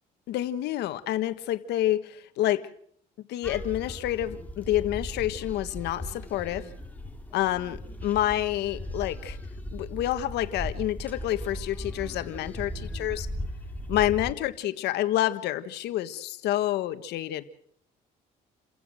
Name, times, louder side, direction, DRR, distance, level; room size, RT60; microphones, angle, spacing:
voice 1, 0.3-2.6 3.3-6.7 7.3-9.4 9.7-13.3 13.9-17.4, left 13 dB, 80° left, 12 dB, 1.5 m, -28 dB
sound 1, 3.4-14.3, left 1 dB, 10° left, 2.7 m, -38 dB
29.5 x 16.0 x 6.4 m, 0.64 s
cardioid pair, 110°, 17 cm